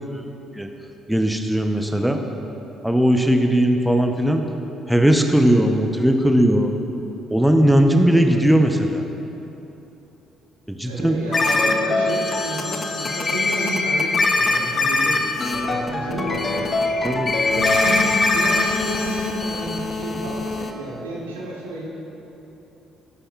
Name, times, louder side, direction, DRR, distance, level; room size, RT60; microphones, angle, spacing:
voice 1, 1.1-2.2 2.8-4.4 4.9-6.7 7.3-9.0 10.7-11.2 17.0-17.3, right 1 dB, 5° right, 4 dB, 0.8 m, -18 dB
voice 2, 10.8-15.2 15.5-16.7 17.5-21.9, right 1 dB, 75° right, -4 dB, 1.6 m, -31 dB
sound 1, 11.3-20.7, left 3 dB, 35° left, 0.8 m, -22 dB
17.5 x 9.9 x 2.4 m, 3.0 s
figure-of-eight pair, 45°, 0 cm